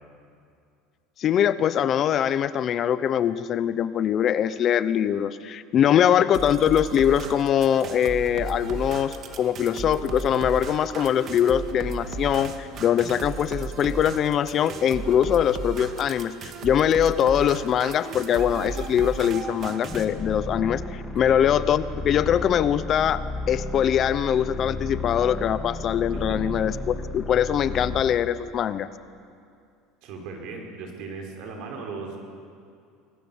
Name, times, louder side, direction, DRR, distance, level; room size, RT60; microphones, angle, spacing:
voice 1, 1.2-28.9, left 9 dB, 40° left, 14 dB, 0.8 m, -22 dB
sound 1, 6.3-20.0, right 5 dB, 40° right, 2.1 m, -35 dB
sound 2, 19.9-28.1, left 2 dB, 20° left, 1.9 m, -33 dB
voice 2, 26.1-26.5 30.0-32.2, right 4 dB, 65° right, 2 dB, 5.1 m, -37 dB
25.0 x 19.5 x 7.3 m, 2.4 s
supercardioid pair, 130°, 0 cm